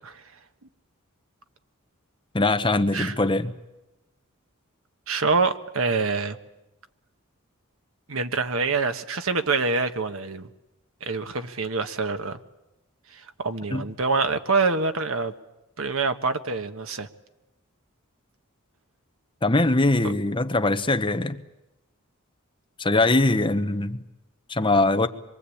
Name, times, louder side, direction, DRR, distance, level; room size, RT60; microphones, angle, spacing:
voice 1, 2.3-3.5 13.7-13.9 19.4-21.4 22.8-24.0 24.5-25.1, left 2 dB, 25° left, 8 dB, 1.0 m, -22 dB
voice 2, 5.1-6.4 8.1-10.5 11.0-12.4 13.1-15.3 15.8-17.1, right 4 dB, 70° right, 8 dB, 1.3 m, -25 dB
25.5 x 23.5 x 8.6 m, 0.98 s
head